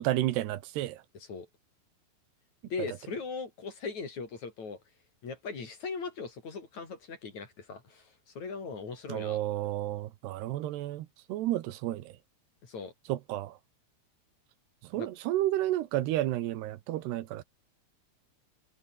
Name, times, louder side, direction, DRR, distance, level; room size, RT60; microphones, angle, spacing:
voice 1, 0.0-1.0 9.1-12.1 13.1-13.5 14.9-17.4, right 14 dB, 80° right, 3.3 m, -31 dB
voice 2, 1.1-1.5 2.7-4.8 5.2-9.4 12.6-12.9 14.9-15.1, left 4 dB, 45° left, 5.3 m, -39 dB
omnidirectional pair, 4.7 m